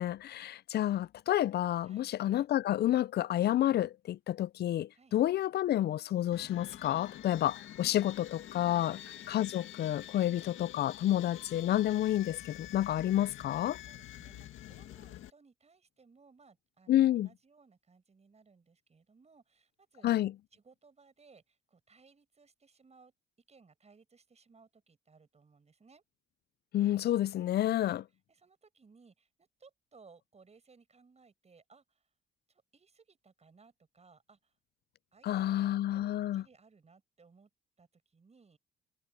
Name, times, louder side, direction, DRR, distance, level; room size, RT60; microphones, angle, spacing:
voice 1, 0.0-9.0 9.3-13.8 16.9-17.3 20.0-20.3 26.7-28.0 35.2-36.4, left 13 dB, 55° left, 0.4 m, -29 dB
sound 1, 6.3-15.3, left 12 dB, 80° left, 1.9 m, -48 dB
voice 2, 7.1-7.5 8.7-9.0 10.1-10.4 13.8-20.1 20.5-23.1 23.5-26.0 27.7-28.0 28.3-32.1 32.5-34.5 35.1-37.5 37.8-38.6, right 4 dB, 35° right, 8.0 m, -62 dB
cardioid pair, 90°, 20 cm